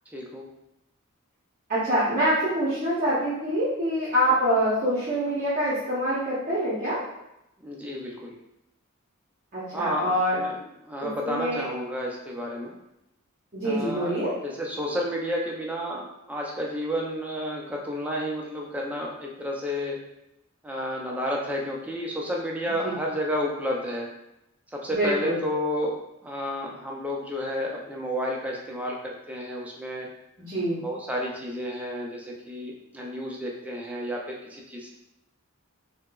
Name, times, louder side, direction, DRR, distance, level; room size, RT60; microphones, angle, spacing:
voice 1, 0.1-0.4 7.6-8.4 9.7-10.6 10.8-12.8 13.6-20.0 20.6-24.1 24.7-26.0 26.2-30.1 30.8-34.9, equal, 5° right, -2 dB, 0.4 m, -31 dB
voice 2, 1.7-7.0 9.5-10.4 11.0-11.6 13.5-14.3 22.8-22.9 24.9-25.4 30.5-30.8, right 1 dB, 40° right, -10 dB, 0.7 m, -25 dB
4.2 x 2.0 x 2.3 m, 0.85 s
head